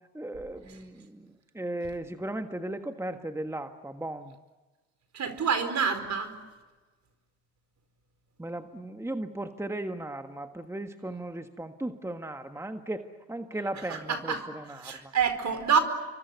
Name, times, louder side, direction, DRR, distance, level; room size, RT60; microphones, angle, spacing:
voice 1, 0.1-4.3 8.4-15.1, right 1 dB, 10° right, 7 dB, 1.5 m, -36 dB
voice 2, 5.1-6.4 13.9-14.4 14.8-15.8, right 6 dB, 55° right, 10 dB, 4.7 m, -27 dB
28.0 x 24.0 x 8.2 m, 1.3 s
supercardioid pair, 70°, 34 cm